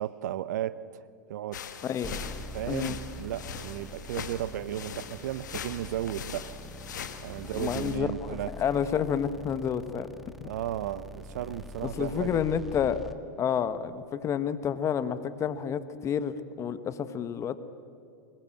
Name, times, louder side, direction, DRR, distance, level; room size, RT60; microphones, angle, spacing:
voice 1, 0.0-1.6 2.5-6.5 7.2-8.5 10.4-12.4, right 12 dB, 65° right, 17 dB, 0.8 m, -35 dB
sound 1, 1.5-8.0, left 7 dB, 75° left, 1.6 m, -41 dB
voice 2, 1.8-2.1 2.7-3.0 7.5-10.1 10.4-10.5 11.8-13.0 13.4-17.6, left 8 dB, 30° left, 13 dB, 1.3 m, -29 dB
sound 2, 2.0-13.1, equal, ahead, 1.5 m, -44 dB
24.5 x 20.5 x 7.7 m, 2.4 s
hypercardioid pair, 95°, 10 cm